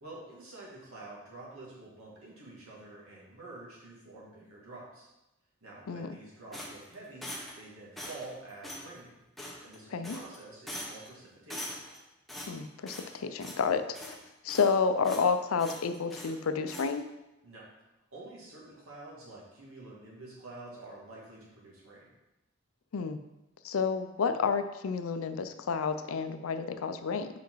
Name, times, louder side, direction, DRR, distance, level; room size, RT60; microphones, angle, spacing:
voice 1, 0.0-5.1 5.6-7.2 7.6-9.1 9.6-11.8 17.4-17.7 18.1-22.1, right 2 dB, 80° right, -5 dB, 2.1 m, -48 dB
sound 1, 6.5-7.6 8.0-8.3 8.6-8.9 9.4-9.8 10.0-10.4 10.7-11.1 11.5-12.0 12.3-13.1 13.4-13.7 13.9-14.8 15.0-15.3 15.6-16.3 16.7-16.9, left 1 dB, ahead, 0.9 m, -42 dB
voice 2, 12.5-14.2 14.4-17.1 22.9-23.2 23.6-27.3, left 5 dB, 85° left, 10 dB, 0.5 m, -30 dB
5.1 x 4.7 x 4.6 m, 0.97 s
head